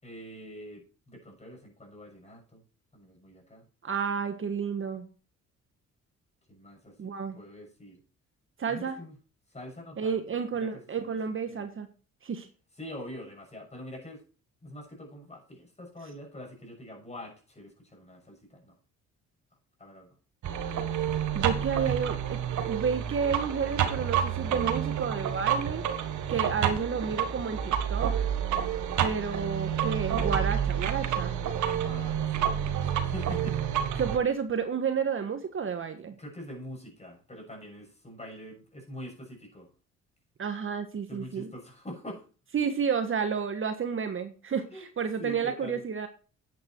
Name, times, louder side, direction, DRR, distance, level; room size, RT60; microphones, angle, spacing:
voice 1, 0.0-2.6 2.9-3.7 6.5-8.0 8.7-9.2 9.5-11.7 12.8-14.2 14.6-18.7 19.8-20.2 31.6-33.8 36.2-39.7 41.1-42.3 44.7-44.9 45.2-45.8, equal, 20° left, 1 dB, 6.8 m, -45 dB
voice 2, 3.8-5.1 7.0-7.4 8.6-9.0 10.0-11.9 12.2-12.5 21.3-22.4 22.6-25.8 26.3-28.3 29.0-31.4 34.0-36.1 40.4-41.5 42.5-44.7 45.0-46.1, right 6 dB, 45° right, 8 dB, 1.4 m, -31 dB
sound 1, 20.4-34.2, right 9 dB, 75° right, 1.6 m, -29 dB
10.5 x 8.8 x 4.6 m, 0.37 s
cardioid pair, 90°, 30 cm